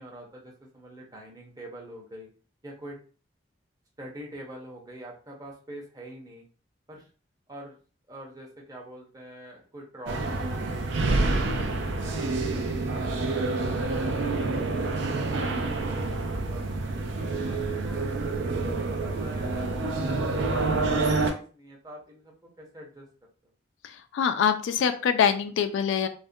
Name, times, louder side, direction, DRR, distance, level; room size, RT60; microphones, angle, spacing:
voice 1, 0.0-2.3 2.6-3.0 4.0-6.5 6.9-7.1 7.5-7.8 8.1-11.3 12.0-13.2 13.7-17.1 17.4-20.3 20.5-23.1, right 1 dB, 20° right, -1 dB, 0.6 m, -45 dB
sound 1, 10.1-21.3, right 3 dB, 75° right, 0.4 m, -28 dB
voice 2, 23.8-26.1, left 7 dB, 80° left, 9 dB, 0.3 m, -24 dB
2.4 x 2.1 x 2.6 m, 0.39 s
head